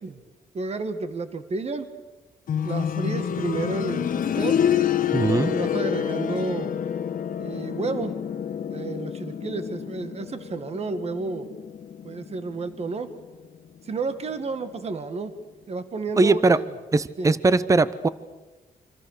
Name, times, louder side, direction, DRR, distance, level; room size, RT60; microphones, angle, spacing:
voice 1, 0.5-1.9 2.6-4.6 5.4-6.8 7.4-8.1 8.7-11.5 12.0-13.1 13.8-15.3 15.7-16.6 17.2-17.4, right 3 dB, 45° right, 10 dB, 1.9 m, -31 dB
sound 1, 2.5-13.2 13.5-13.6 14.5-14.6, left 9 dB, 65° left, 1.2 m, -28 dB
voice 2, 5.1-5.5 16.2-16.6 16.9-18.1, right 3 dB, 20° right, 16 dB, 0.8 m, -20 dB
29.0 x 25.5 x 6.7 m, 1.2 s
cardioid pair, 105°, 15 cm